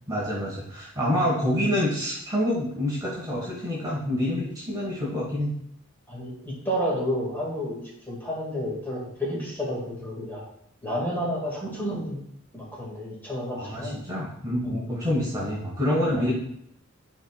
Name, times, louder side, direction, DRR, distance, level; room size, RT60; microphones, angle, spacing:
voice 1, 0.1-5.5 13.5-16.3, left 1 dB, 20° right, -5 dB, 1.5 m, -27 dB
voice 2, 6.1-10.4 10.8-12.2 12.5-14.0 14.6-14.9 16.2-16.3, equal, 10° left, -5 dB, 2.0 m, -31 dB
10.5 x 4.4 x 2.4 m, 0.73 s
head